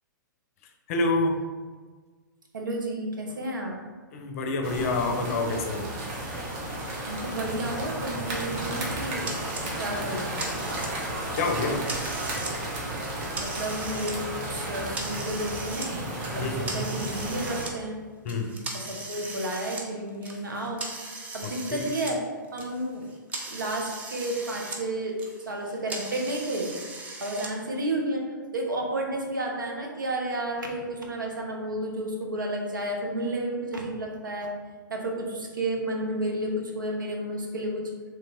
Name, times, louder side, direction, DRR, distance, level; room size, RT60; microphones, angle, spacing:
voice 1, 0.9-1.4 4.1-5.9 11.3-11.8 12.3-12.4 16.3-16.7 18.2-18.5 21.4-21.9, left 3 dB, 45° left, 4 dB, 0.5 m, -28 dB
voice 2, 2.5-3.8 7.1-9.3 9.8-10.3 13.4-16.0 16.3-18.0 18.7-20.8 21.3-22.2 22.5-23.0 23.5-25.2 25.5-26.7 27.2-28.3 28.5-34.5 34.9-37.8, right 1 dB, 80° right, 0 dB, 0.7 m, -31 dB
sound 1, 4.6-17.6, right 1 dB, 35° right, 0.9 m, -33 dB
sound 2, 9.3-9.7 10.1-11.1 11.5-12.5 12.9-14.1 14.5-15.9 16.2-17.7 18.3-22.2 22.4-24.8 25.1-27.5, right 2 dB, 15° right, 0.5 m, -38 dB
3.0 x 2.8 x 3.5 m, 1.4 s
figure-of-eight pair, 110°, 11 cm